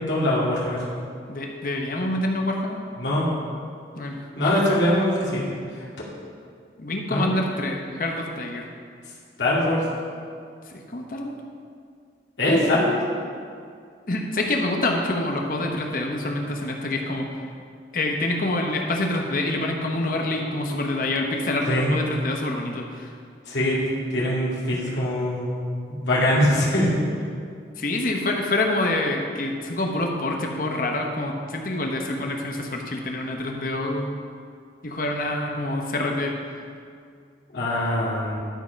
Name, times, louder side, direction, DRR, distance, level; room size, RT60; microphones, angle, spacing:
voice 1, 0.1-0.8 3.0-3.3 4.4-5.5 5.8-5.9 7.1-7.3 9.4-9.8 12.4-13.0 21.7-21.9 23.5-26.9 37.5-38.4, left 1 dB, 85° left, -7 dB, 2.2 m, -22 dB
voice 2, 1.3-2.8 4.0-4.5 6.8-8.6 10.7-11.4 14.1-17.3 17.9-23.1 27.8-34.1 34.8-36.3, left 2 dB, 50° left, 2 dB, 0.9 m, -26 dB
12.0 x 4.8 x 5.2 m, 2.2 s
head